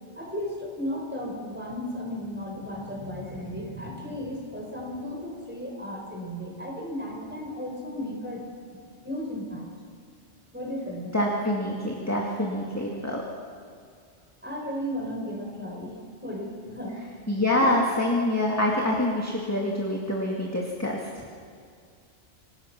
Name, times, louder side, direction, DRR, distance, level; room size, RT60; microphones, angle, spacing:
voice 1, 0.1-8.4 9.0-9.7 10.5-11.1 14.4-17.0 17.4-17.8, left 1 dB, 10° right, -1 dB, 4.8 m, -35 dB
voice 2, 11.1-13.2 17.3-21.2, left 1 dB, 15° left, -3 dB, 2.2 m, -26 dB
26.5 x 18.5 x 6.0 m, 2.2 s
omnidirectional pair, 1.2 m